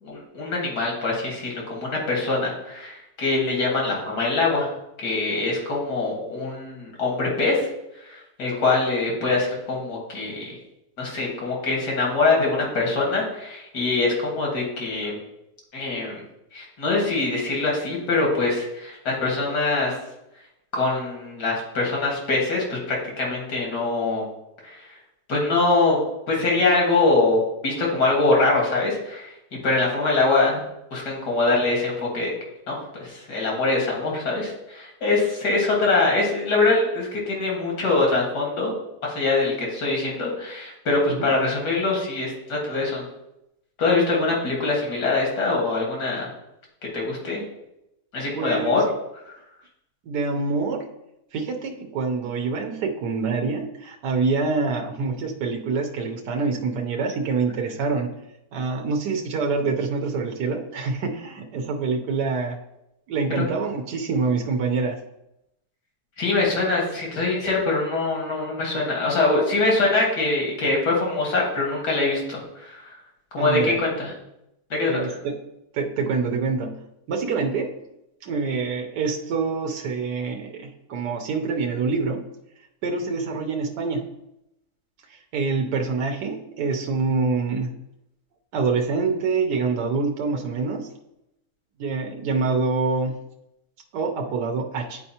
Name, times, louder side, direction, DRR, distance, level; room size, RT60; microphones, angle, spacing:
voice 1, 0.0-4.7 5.0-7.7 8.0-10.6 11.0-15.2 15.7-16.2 16.5-20.0 20.7-24.3 24.6-24.9 25.3-26.0 26.3-29.3 29.6-30.6 30.9-32.3 32.7-38.7 39.0-43.1 43.8-46.3 46.9-47.4 48.1-48.8 66.2-72.9 73.3-74.1 74.7-75.0, left 3 dB, 85° left, -2 dB, 2.3 m, -23 dB
voice 2, 48.3-48.8 50.1-50.9 51.3-58.1 58.5-62.6 63.1-65.0 73.4-73.8 74.9-75.3 75.7-76.8 77.1-77.7 78.2-82.2 82.8-84.0 85.1-87.7 88.5-90.9 91.8-93.1 93.9-95.0, right 4 dB, 85° right, 2 dB, 1.4 m, -26 dB
10.5 x 4.4 x 2.8 m, 0.86 s
omnidirectional pair, 1.7 m